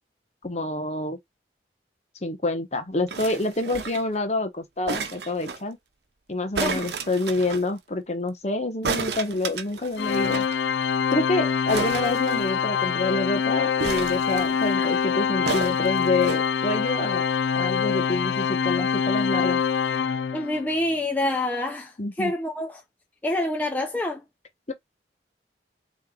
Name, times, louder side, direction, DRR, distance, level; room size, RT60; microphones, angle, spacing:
voice 1, 0.4-1.2 2.2-5.8 6.3-10.5 11.1-17.2 17.5-19.6 22.0-22.3 24.7-24.8, left 2 dB, 40° left, 1.1 m, -27 dB
sound 1, 3.1-4.2 4.9-5.6 6.5-7.7 8.8-10.5 10.8-10.9 11.1-11.3 11.7-12.9 13.8-14.7 15.5-16.4 17.2-17.3, right 4 dB, 70° right, 0.9 m, -32 dB
Organ, 10.0-20.7, left 6 dB, 75° left, 0.4 m, -25 dB
voice 2, 20.3-22.8 23.2-24.2, left 1 dB, 10° left, 0.6 m, -27 dB
4.3 x 3.3 x 3.8 m
head